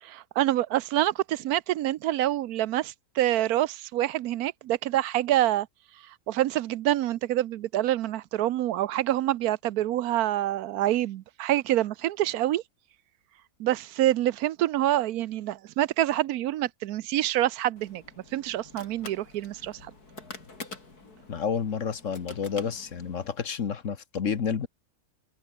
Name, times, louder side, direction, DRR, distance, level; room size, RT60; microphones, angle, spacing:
voice 1, 0.0-5.7 6.0-12.6 13.6-18.0 18.3-19.9, right 13 dB, 80° right, 1.1 m, -26 dB
sound 1, 17.8-23.3, left 3 dB, 90° left, 4.9 m, -46 dB
voice 2, 21.3-24.7, left 6 dB, 55° left, 1.6 m, -30 dB
open air
omnidirectional pair, 1.6 m